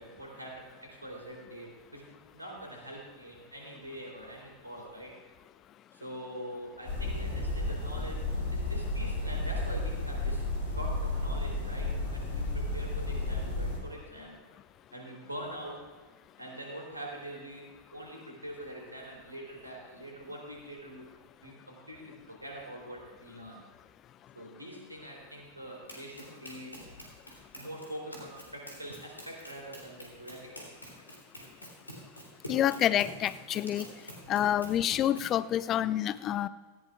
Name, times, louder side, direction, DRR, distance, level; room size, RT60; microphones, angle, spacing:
voice 1, 0.0-5.2 5.9-10.5 10.7-14.4 14.9-15.9 16.4-21.1 21.4-23.6 24.3-27.1 27.6-30.6 34.2-34.4, right 1 dB, 85° right, -1 dB, 3.2 m, -44 dB
sound 1, 6.8-13.8, left 2 dB, 60° left, 3.8 m, -32 dB
Run, 25.9-35.4, equal, 85° left, 3.1 m, -47 dB
voice 2, 32.5-33.9 34.3-36.5, left 11 dB, 30° left, 17 dB, 0.4 m, -28 dB
18.0 x 15.0 x 2.4 m, 1.5 s
figure-of-eight pair, 90°, 0 cm